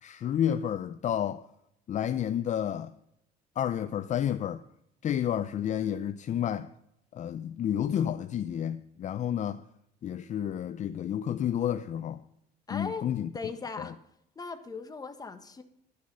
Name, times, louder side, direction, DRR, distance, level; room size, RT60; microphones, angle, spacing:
voice 1, 0.0-1.4 1.9-2.9 3.6-4.6 5.0-6.7 7.1-9.6 10.0-12.2 12.7-13.3 13.8-13.9, left 10 dB, 45° left, 0.5 m, -30 dB
voice 2, 12.7-13.1 13.3-13.9 14.3-15.6, left 4 dB, 20° left, 1.4 m, -38 dB
11.5 x 9.5 x 5.5 m
cardioid pair, 110°, 17 cm